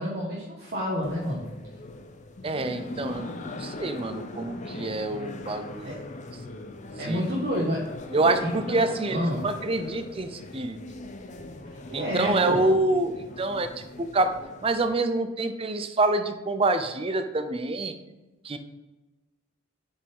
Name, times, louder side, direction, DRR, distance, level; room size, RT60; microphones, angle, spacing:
voice 1, 0.0-1.5 5.8-6.0 7.0-7.9 8.4-8.8 9.1-9.5 11.9-12.6, equal, 50° right, -6 dB, 1.4 m, -29 dB
sound 1, 1.0-14.9, left 2 dB, 35° left, 0.6 m, -41 dB
voice 2, 2.4-5.9 7.1-7.2 8.1-10.8 11.9-14.4 14.6-17.9 18.4-18.6, right 2 dB, 30° right, 8 dB, 0.5 m, -26 dB
7.1 x 5.4 x 3.6 m, 1.1 s
head